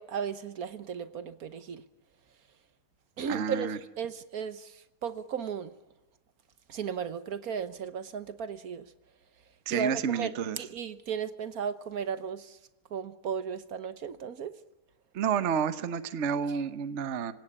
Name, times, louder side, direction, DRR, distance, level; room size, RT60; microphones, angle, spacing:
voice 1, 0.0-1.8 3.2-5.7 6.7-8.9 9.7-12.6 12.9-14.5, right 7 dB, 65° right, 1.5 m, -35 dB
voice 2, 3.3-3.8 9.7-10.6 15.1-17.3, right 7 dB, 50° right, 1.1 m, -30 dB
26.5 x 17.0 x 9.7 m
omnidirectional pair, 1.7 m